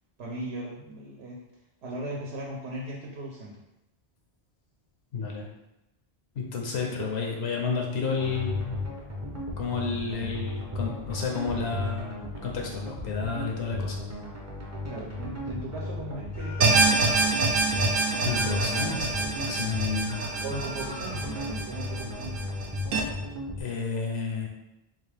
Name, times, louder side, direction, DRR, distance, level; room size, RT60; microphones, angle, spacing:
voice 1, 0.2-1.4 1.8-3.6 6.8-7.1 14.9-17.2 20.4-22.6, right 1 dB, 90° right, -2 dB, 0.9 m, -38 dB
voice 2, 5.1-5.5 6.3-8.8 9.6-12.1 12.4-14.0 18.2-20.2 23.6-24.5, left 5 dB, 80° left, 0 dB, 0.9 m, -31 dB
sound 1, 8.2-23.6, left 2 dB, 20° right, 0.5 m, -35 dB
sound 2, 16.3-17.4 18.2-19.3 20.0-21.4, left 1 dB, 50° left, 0.5 m, -44 dB
sound 3, 16.6-23.0, right 3 dB, 65° right, 0.7 m, -26 dB
3.8 x 2.3 x 3.3 m, 0.91 s
omnidirectional pair, 1.1 m